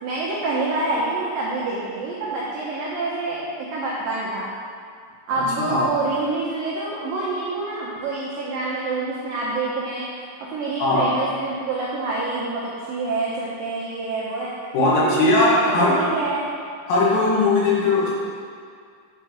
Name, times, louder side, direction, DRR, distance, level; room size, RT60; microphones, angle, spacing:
voice 1, 0.0-4.5 5.3-10.1 10.5-14.5 14.9-16.5, right 3 dB, 85° right, -6 dB, 2.0 m, -27 dB
voice 2, 5.3-5.8 10.8-11.2 14.7-16.0 16.9-18.1, left 2 dB, 85° left, -6 dB, 4.3 m, -19 dB
8.8 x 4.4 x 6.3 m, 2.2 s
omnidirectional pair, 5.5 m